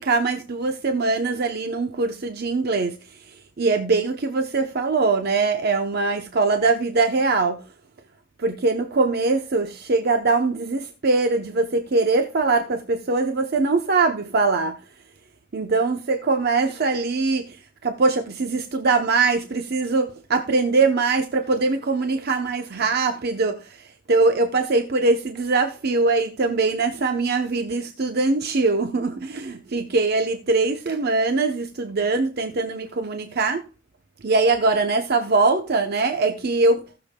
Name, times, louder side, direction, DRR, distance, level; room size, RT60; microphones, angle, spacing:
voice 1, 0.0-3.0 3.3-7.6 8.4-14.8 15.5-17.6 17.8-33.6 34.2-36.8, right 3 dB, 55° right, 0.8 m, -22 dB
18.0 x 6.9 x 2.2 m
head